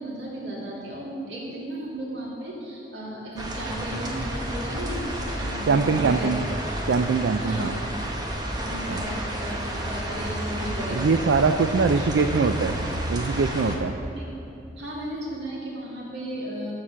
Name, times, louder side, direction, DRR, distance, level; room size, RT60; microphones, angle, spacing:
voice 1, 0.0-6.3 7.4-7.8 8.5-11.2 11.8-11.9 14.0-14.3 14.8-16.7, right 1 dB, 75° right, -4 dB, 2.5 m, -35 dB
sound 1, 3.4-13.8, right 1 dB, 20° right, 1.0 m, -31 dB
voice 2, 5.7-6.4 6.9-7.7 8.9-9.0 10.9-12.8 13.1-14.0, right 4 dB, 90° right, 7 dB, 0.4 m, -22 dB
12.5 x 4.8 x 7.5 m, 2.7 s
head